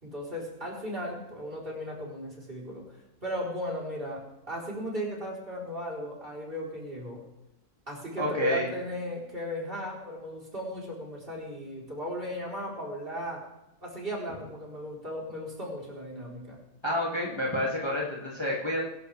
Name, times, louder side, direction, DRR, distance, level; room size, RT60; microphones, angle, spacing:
voice 1, 0.0-7.2 7.9-13.4 13.8-16.6, equal, 35° right, -3 dB, 4.5 m, -36 dB
voice 2, 8.2-8.7 16.8-18.8, left 1 dB, 15° left, -4 dB, 2.6 m, -29 dB
23.5 x 11.0 x 3.5 m, 0.92 s
omnidirectional pair, 1.6 m